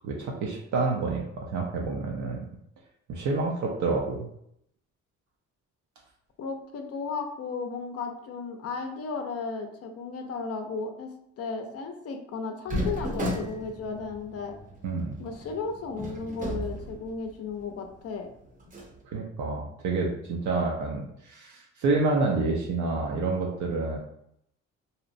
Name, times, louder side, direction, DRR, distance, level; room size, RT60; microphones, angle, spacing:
voice 1, 0.0-2.5 3.1-4.3 14.8-15.2 19.0-24.0, right 3 dB, 75° right, -1 dB, 0.5 m, -28 dB
voice 2, 6.4-14.6 15.2-18.3, left 4 dB, 55° left, 4 dB, 0.5 m, -35 dB
sound 1, 12.7-17.6 17.9-18.0 18.6-19.0, equal, 25° right, 0.6 m, -35 dB
2.7 x 2.0 x 2.5 m, 0.74 s
cardioid pair, 90°, 30 cm